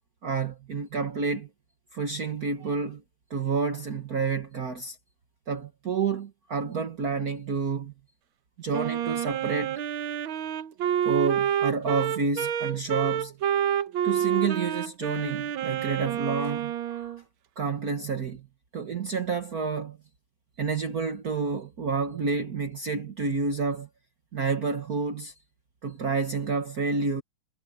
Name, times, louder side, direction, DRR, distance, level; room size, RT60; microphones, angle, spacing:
voice 1, 0.2-1.5 1.9-3.0 3.3-5.0 5.5-7.9 8.6-9.8 11.1-13.3 14.0-17.1 17.6-18.5 18.7-20.0 20.6-23.9 24.3-25.3 25.8-27.2, right 5 dB, 50° right, 1.8 m, -29 dB
Wind instrument woodwind instrument, 8.7-17.2, right 9 dB, 75° right, 1.8 m, -28 dB
omnidirectional pair, 2.3 m